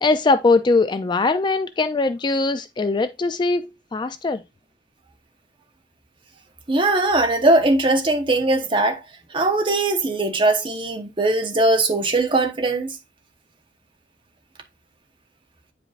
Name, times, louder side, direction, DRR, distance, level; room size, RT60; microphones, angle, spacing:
voice 1, 0.0-4.4, left 3 dB, 25° left, 0.3 m, -21 dB
voice 2, 6.7-9.0 9.3-13.0, right 2 dB, 30° right, 1.0 m, -20 dB
8.9 x 5.1 x 2.5 m
head